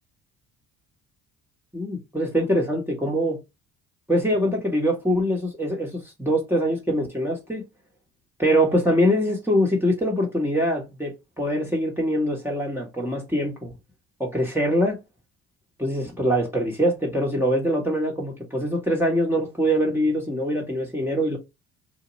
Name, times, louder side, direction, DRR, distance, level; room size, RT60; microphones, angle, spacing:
voice 1, 1.7-3.4 4.1-7.6 8.4-13.7 14.2-15.0 15.8-21.4, equal, 5° right, 1.0 m, -23 dB
2.9 x 2.2 x 2.9 m
hypercardioid pair, 55°, 39 cm